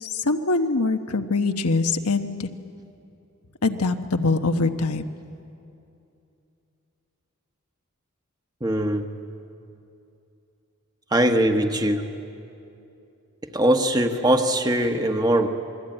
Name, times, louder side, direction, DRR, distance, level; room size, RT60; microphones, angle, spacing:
voice 1, 0.0-2.5 3.6-5.1, left 3 dB, 85° left, 7 dB, 1.2 m, -23 dB
voice 2, 8.6-9.0 11.1-12.0 13.5-15.5, right 1 dB, 20° right, 5 dB, 1.2 m, -21 dB
27.0 x 21.0 x 9.0 m, 2.7 s
head